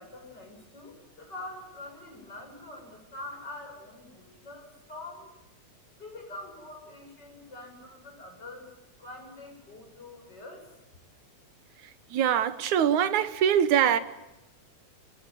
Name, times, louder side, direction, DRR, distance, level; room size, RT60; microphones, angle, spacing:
voice 1, 0.0-5.3 5.9-8.7 9.0-10.7, left 2 dB, 35° left, 8.0 m, -45 dB
voice 2, 12.1-14.0, right 9 dB, 85° right, 2.7 m, -23 dB
26.0 x 23.5 x 9.3 m
omnidirectional pair, 3.3 m